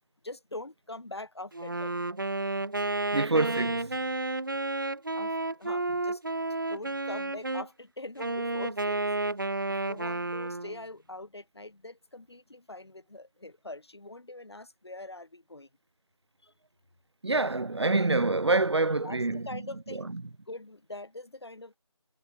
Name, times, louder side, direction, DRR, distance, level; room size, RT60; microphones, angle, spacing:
voice 1, 0.2-2.0 5.2-5.3 5.6-6.2 6.7-9.0 9.3-15.7 16.4-16.5 19.0-20.1 20.5-21.8, left 2 dB, 50° left, 4.9 m, -43 dB
Wind instrument woodwind instrument, 1.5-7.7 8.2-10.8, right 2 dB, 40° right, 1.0 m, -31 dB
voice 2, 3.1-3.9 17.2-19.6 20.1-20.2, right 3 dB, 55° right, 0.6 m, -26 dB
figure-of-eight pair, 170°, 17 cm